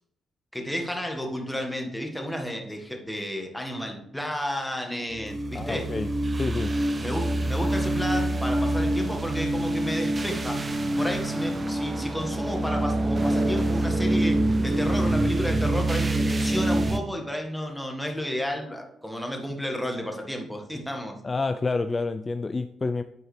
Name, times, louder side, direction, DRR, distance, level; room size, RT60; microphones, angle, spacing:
voice 1, 0.5-5.9 7.0-10.6 11.0-21.2, equal, 5° left, 2 dB, 1.7 m, -32 dB
sound 1, 5.1-17.0, right 1 dB, 35° right, 0.8 m, -26 dB
voice 2, 5.5-6.1 6.4-6.8 21.2-23.0, left 3 dB, 35° left, 10 dB, 0.3 m, -28 dB
9.4 x 4.6 x 3.3 m, 0.77 s
hypercardioid pair, 50°, 0 cm